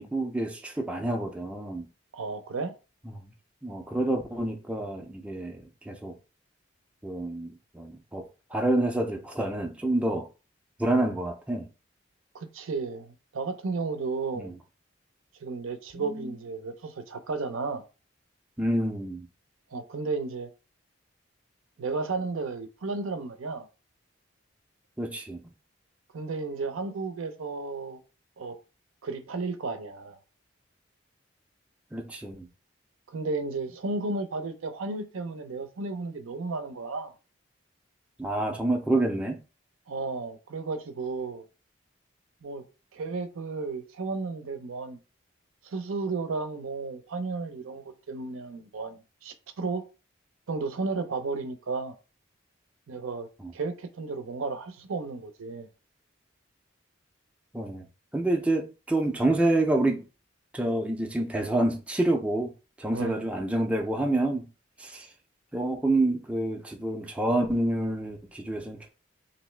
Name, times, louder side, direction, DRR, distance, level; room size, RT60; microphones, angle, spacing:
voice 1, 0.0-1.9 3.6-6.2 7.0-10.3 10.8-11.7 14.4-14.5 15.9-16.4 18.6-19.3 25.0-25.4 31.9-32.5 38.2-39.4 53.4-53.5 57.5-57.8 58.1-60.1 60.5-62.5 62.8-64.5 64.8-65.1 65.5-68.9, right 1 dB, 5° right, 0.4 m, -28 dB
voice 2, 2.1-2.7 12.3-14.5 15.4-17.8 19.7-20.5 21.8-23.7 26.1-28.0 28.4-28.6 29.0-30.2 33.1-37.1 39.9-41.5 42.4-42.6 42.9-45.0 45.6-49.8 50.5-51.9 52.9-53.3 53.5-55.7 62.9-63.2, right 3 dB, 85° right, 0.5 m, -33 dB
3.1 x 2.6 x 3.2 m
head